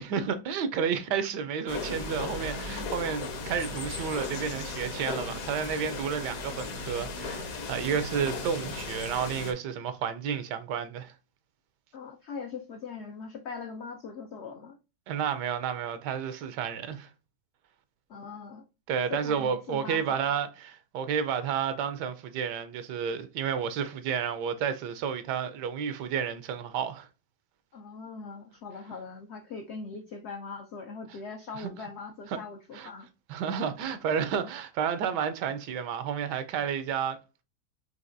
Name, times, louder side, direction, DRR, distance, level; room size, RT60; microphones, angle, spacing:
voice 1, 0.0-11.1 15.1-17.1 18.9-27.1 31.6-31.7 32.3-32.4 32.7-32.9 33.3-37.2, right 7 dB, 85° right, 1.3 m, -31 dB
sound 1, 1.7-9.5, left 3 dB, 60° left, 1.2 m, -36 dB
voice 2, 11.9-14.8 18.1-18.6 19.1-20.4 27.7-33.1, left 5 dB, 80° left, 0.6 m, -41 dB
5.6 x 2.9 x 2.5 m
omnidirectional pair, 1.8 m